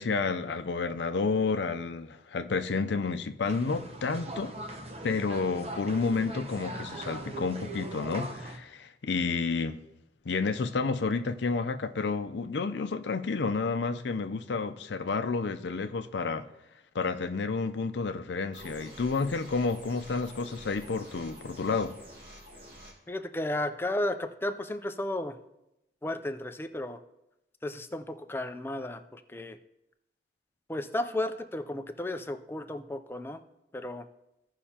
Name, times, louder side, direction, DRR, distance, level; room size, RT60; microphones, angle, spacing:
voice 1, 0.0-4.5 5.0-9.8 10.3-16.5 16.9-22.0, left 4 dB, 80° left, 0.5 m, -30 dB
sound 1, 3.4-8.6, right 1 dB, 35° right, 0.7 m, -40 dB
sound 2, 18.5-22.9, equal, 60° right, 2.4 m, -48 dB
voice 2, 23.1-25.4 26.0-27.0 27.6-29.6 30.7-33.4 33.7-34.1, left 1 dB, 15° left, 0.4 m, -33 dB
16.0 x 5.5 x 2.8 m
head